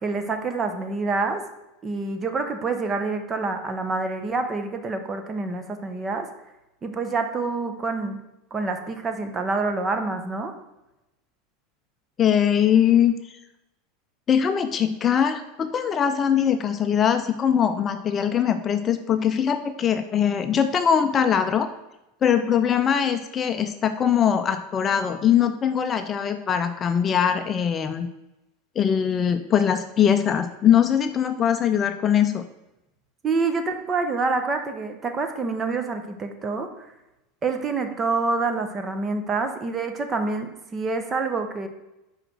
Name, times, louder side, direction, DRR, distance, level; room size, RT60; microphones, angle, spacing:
voice 1, 0.0-1.4 1.8-6.3 6.8-8.2 8.5-10.5 33.2-36.7 37.4-41.7, right 3 dB, 25° right, 7 dB, 0.8 m, -27 dB
voice 2, 12.2-13.1 14.3-21.7 22.2-28.1 28.8-32.4, left 8 dB, 30° left, 8 dB, 0.5 m, -21 dB
5.0 x 4.9 x 6.2 m, 0.94 s
supercardioid pair, 130°, 0 cm